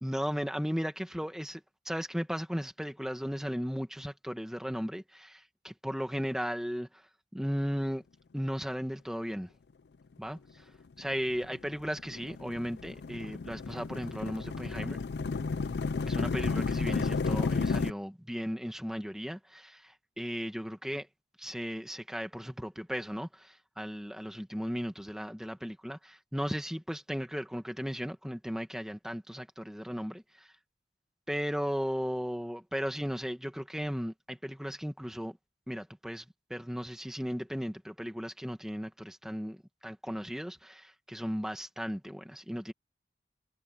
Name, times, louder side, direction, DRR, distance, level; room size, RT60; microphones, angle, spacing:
voice 1, 0.0-7.1 7.3-8.0 8.3-9.5 10.2-10.4 11.0-15.0 16.0-21.1 21.4-30.5 31.3-35.4 35.7-36.2 36.5-39.6 39.8-42.7, equal, 5° right, 1.6 m, -36 dB
Rumbling AC, 11.0-17.9, left 4 dB, 65° left, 0.5 m, -32 dB
head